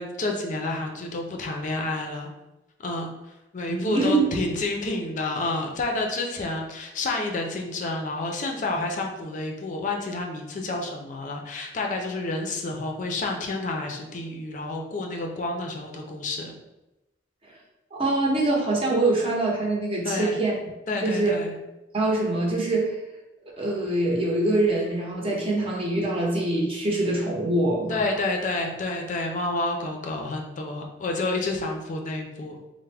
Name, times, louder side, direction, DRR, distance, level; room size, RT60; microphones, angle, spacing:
voice 1, 0.0-2.3 2.8-3.1 3.5-16.5 20.0-20.4 20.9-21.5 27.9-32.6, left 2 dB, 45° left, 2 dB, 0.4 m, -29 dB
voice 2, 3.7-4.3 17.9-20.5 21.0-21.3 21.9-23.0 23.6-28.0, right 2 dB, 30° right, -2 dB, 0.7 m, -24 dB
3.3 x 2.0 x 3.3 m, 0.95 s
head